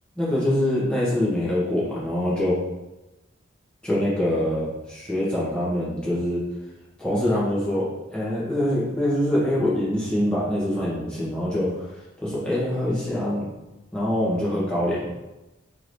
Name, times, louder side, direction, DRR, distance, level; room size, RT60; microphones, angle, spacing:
voice 1, 0.2-2.6 3.8-6.4 7.0-11.9 12.2-13.5 13.9-15.1, left 1 dB, 5° left, -8 dB, 1.0 m, -24 dB
3.8 x 3.1 x 2.6 m, 1.0 s
head